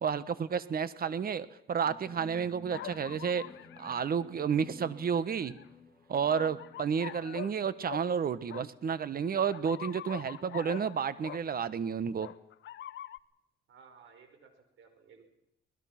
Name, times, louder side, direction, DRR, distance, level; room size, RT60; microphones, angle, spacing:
voice 1, 0.0-3.4 3.8-5.6 6.1-12.3, right 7 dB, 50° right, 15 dB, 1.3 m, -31 dB
sound 1, 1.8-8.6, left 4 dB, 20° left, 4.5 m, -54 dB
sound 2, 2.7-4.0 5.1-5.7 6.3-7.5 7.9-8.1 8.5-8.7 9.5-11.4 12.2-13.2, left 12 dB, 65° left, 0.8 m, -44 dB
voice 2, 13.7-15.3, right 6 dB, 75° right, 6 dB, 5.2 m, -57 dB
22.0 x 20.0 x 6.0 m, 0.84 s
cardioid pair, 90°, 20 cm